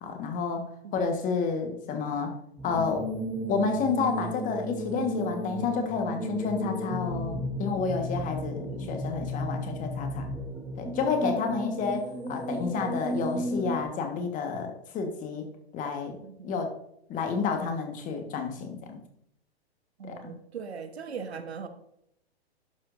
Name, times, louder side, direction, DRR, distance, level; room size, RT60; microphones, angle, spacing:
voice 1, 0.0-0.6 0.9-2.3 2.6-3.1 3.5-10.3 10.8-15.4 15.7-16.2 16.4-16.7 17.1-19.0 20.0-20.3, left 5 dB, 25° left, 1.4 m, -30 dB
sound 1, 2.6-13.8, right 1 dB, 5° right, 1.1 m, -34 dB
voice 2, 8.7-9.3 16.2-16.5 20.0-21.7, right 6 dB, 75° right, 1.1 m, -40 dB
11.5 x 7.5 x 2.6 m
hypercardioid pair, 120°, 32 cm